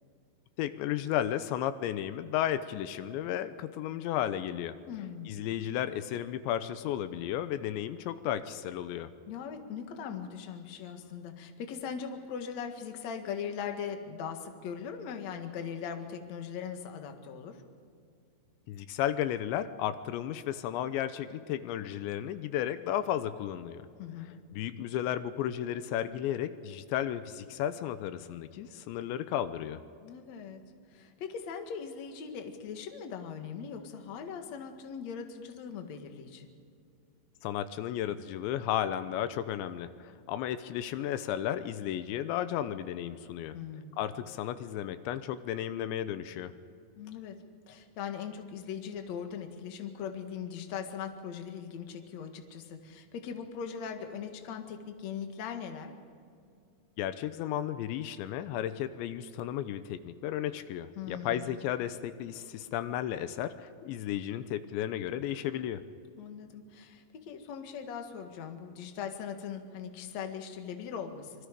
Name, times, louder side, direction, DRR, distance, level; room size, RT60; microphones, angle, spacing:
voice 1, 0.6-4.7 5.3-9.1 18.7-23.9 24.5-29.8 37.4-43.6 44.0-46.5 57.0-65.8, left 11 dB, 85° left, 12 dB, 3.1 m, -33 dB
voice 2, 4.9-5.3 9.3-17.6 24.0-24.3 30.0-30.6 30.9-36.5 43.5-43.9 47.0-47.4 47.7-55.9 61.0-61.5 66.2-71.5, left 7 dB, 50° left, 5 dB, 2.3 m, -40 dB
26.0 x 24.5 x 5.2 m, 2.3 s
omnidirectional pair, 5.1 m